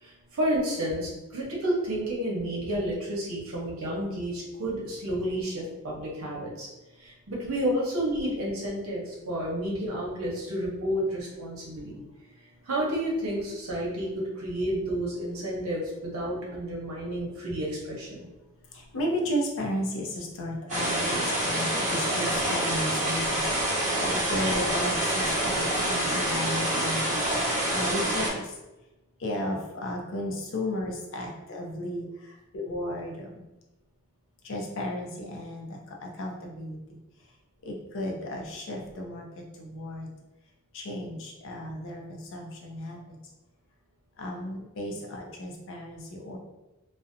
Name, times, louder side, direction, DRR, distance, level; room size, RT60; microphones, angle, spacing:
voice 1, 0.0-6.7 7.0-12.0 12.6-18.2, right 1 dB, 75° right, -4 dB, 0.7 m, -30 dB
voice 2, 18.7-23.5 23.7-27.0 27.7-28.4 29.2-32.1 32.5-33.4 34.4-36.8 37.7-39.2 39.6-40.1 40.7-43.0 44.2-46.4, left 1 dB, 65° left, 0 dB, 0.5 m, -34 dB
sound 1, 20.7-28.3, right 1 dB, 35° right, 0.8 m, -27 dB
2.6 x 2.0 x 2.5 m, 1.0 s
head